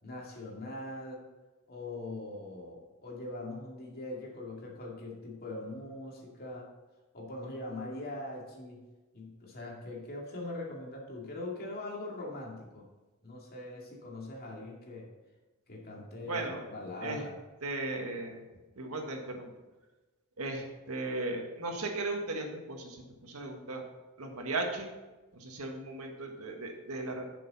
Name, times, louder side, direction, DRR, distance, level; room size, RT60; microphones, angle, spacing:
voice 1, 0.0-1.2 1.7-6.7 7.1-8.8 9.1-12.9 13.2-15.1 15.7-17.4, left 2 dB, 45° left, -2 dB, 2.3 m, -42 dB
voice 2, 16.2-16.7 17.0-17.2 17.6-18.4 18.8-19.5 20.4-23.8 24.2-24.9 25.3-27.2, right 2 dB, 85° right, 3 dB, 1.6 m, -36 dB
10.5 x 6.7 x 4.1 m, 1.2 s
head